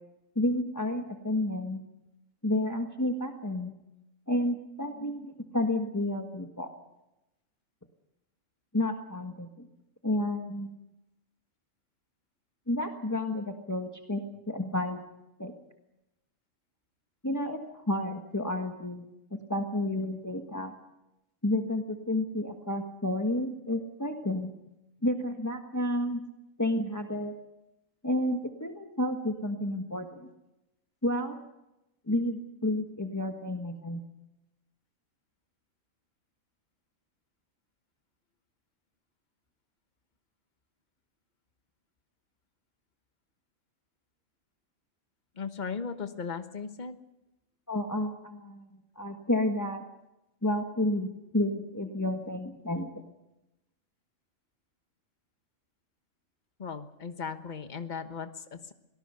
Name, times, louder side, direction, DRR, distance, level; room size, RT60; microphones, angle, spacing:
voice 1, 0.3-1.8 2.4-3.7 4.3-6.7 8.7-9.7 10.0-10.7 12.7-15.0 15.4-15.5 17.2-19.0 19.3-20.7 21.4-24.5 25.0-26.2 26.6-27.3 28.0-30.3 31.0-31.4 32.1-34.0 47.7-48.7 48.9-49.8 50.4-52.9, left 1 dB, 15° left, 4 dB, 1.5 m, -31 dB
voice 2, 45.4-47.0 56.6-58.7, left 5 dB, 35° left, 8 dB, 1.3 m, -37 dB
24.0 x 18.5 x 6.9 m, 0.92 s
omnidirectional pair, 1.4 m